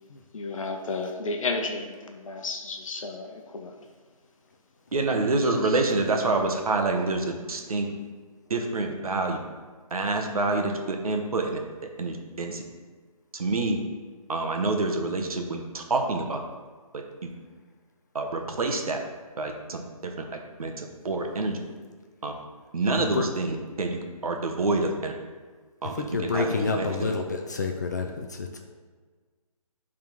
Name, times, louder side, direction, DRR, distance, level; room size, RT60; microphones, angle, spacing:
voice 1, 0.3-3.8, left 3 dB, 60° left, 3 dB, 0.8 m, -32 dB
voice 2, 4.9-7.9 8.5-9.4 9.9-11.5 12.0-12.6 13.3-13.8 14.3-16.4 16.9-17.3 18.1-19.0 19.4-21.6 22.2-22.3 22.7-25.1 25.8-25.9 26.2-27.1, right 3 dB, 70° right, 3 dB, 1.0 m, -27 dB
voice 3, 26.1-28.6, left 3 dB, 30° left, 3 dB, 0.4 m, -28 dB
10.5 x 3.6 x 3.0 m, 1.5 s
hypercardioid pair, 160°, 19 cm